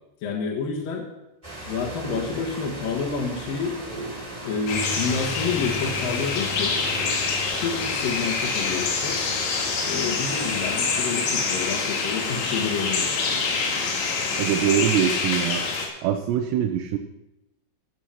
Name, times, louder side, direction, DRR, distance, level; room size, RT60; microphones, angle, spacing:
voice 1, 0.2-1.1 1.6-3.8 4.4-6.8 7.6-9.2 9.9-13.2, left 5 dB, 60° left, -3 dB, 2.8 m, -29 dB
sound 1, 1.4-10.8, right 1 dB, 15° right, 1.5 m, -38 dB
sound 2, 4.7-15.9, left 4 dB, 90° left, 4.5 m, -26 dB
voice 2, 14.4-15.6 16.0-17.0, right 10 dB, 80° right, 4 dB, 2.7 m, -23 dB
15.5 x 6.9 x 5.8 m, 0.95 s
omnidirectional pair, 5.3 m